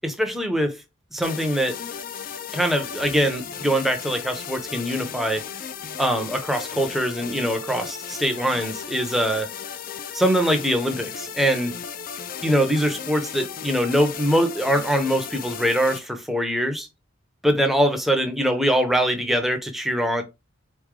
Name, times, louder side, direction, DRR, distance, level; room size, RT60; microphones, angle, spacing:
voice 1, 0.0-0.8 1.1-1.8 2.5-5.4 6.0-9.5 10.1-11.7 12.4-16.9 17.4-20.2, equal, ahead, 0.7 m, -23 dB
sound 1, 1.2-16.0, left 7 dB, 45° left, 0.4 m, -35 dB
4.0 x 3.2 x 3.7 m
head